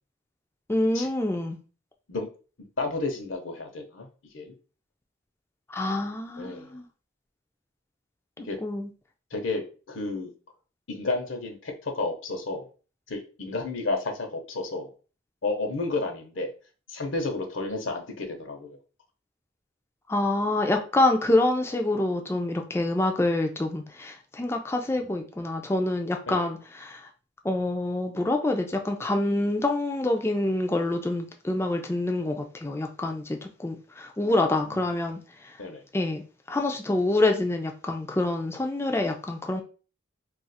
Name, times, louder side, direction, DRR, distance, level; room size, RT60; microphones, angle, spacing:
voice 1, 0.7-1.6 5.7-6.8 8.6-8.9 20.1-27.0 27.4-35.2 35.9-36.2 36.5-39.6, left 2 dB, 10° left, 3 dB, 0.3 m, -26 dB
voice 2, 2.8-4.1 4.3-4.5 6.4-6.7 8.4-8.6 9.3-10.3 10.9-12.7 13.1-14.9 15.4-16.5 16.9-18.8 25.0-25.1 26.3-26.5 34.2-34.9 35.6-35.8, left 3 dB, 70° left, 4 dB, 0.8 m, -32 dB
2.4 x 2.4 x 4.0 m, 0.36 s
head